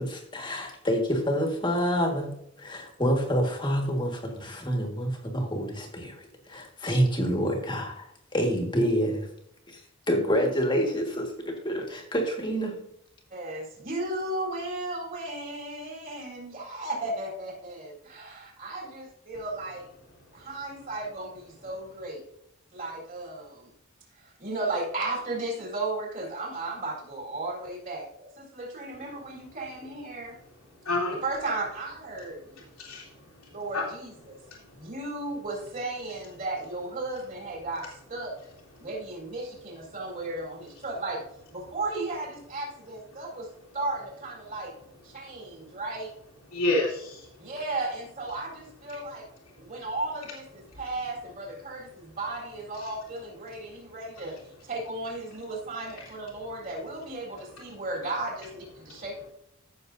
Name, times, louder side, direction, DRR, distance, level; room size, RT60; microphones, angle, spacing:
voice 1, 0.0-9.3 9.7-9.8 10.1-12.7, equal, 20° left, 2 dB, 1.7 m, -27 dB
voice 2, 13.3-19.8 20.3-22.2 22.7-23.7 24.1-30.3 31.2-32.6 33.5-34.4 34.7-38.3 38.8-41.2 41.5-43.5 43.7-44.7 45.0-46.1 47.4-49.3 49.5-59.3, right 2 dB, 35° right, -2 dB, 4.0 m, -35 dB
voice 3, 30.8-31.2 32.8-33.8 34.3-34.8 46.5-47.3 52.8-52.9 58.9-59.0, left 2 dB, 85° left, -6 dB, 2.4 m, -30 dB
14.5 x 6.7 x 2.7 m, 0.74 s
head